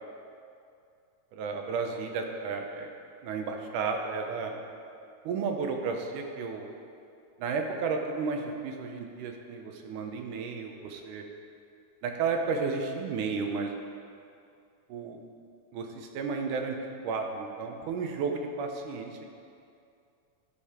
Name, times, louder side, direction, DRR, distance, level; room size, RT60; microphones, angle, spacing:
voice 1, 1.3-2.9 3.2-4.6 5.3-6.7 7.4-11.2 12.0-13.8 14.9-15.2 15.7-16.8 17.0-19.2, right 5 dB, 75° right, 3 dB, 2.2 m, -33 dB
15.5 x 5.3 x 4.3 m, 2.5 s
omnidirectional pair, 3.9 m